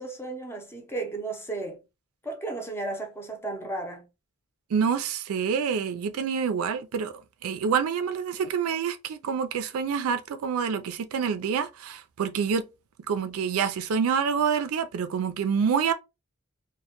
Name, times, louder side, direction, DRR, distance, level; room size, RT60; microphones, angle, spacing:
voice 1, 0.0-1.8 2.2-4.1, right 3 dB, 10° left, 0.5 m, -34 dB
voice 2, 4.7-7.1 7.4-12.6 13.1-15.9, right 6 dB, 85° right, 0.4 m, -27 dB
2.1 x 2.1 x 2.8 m
head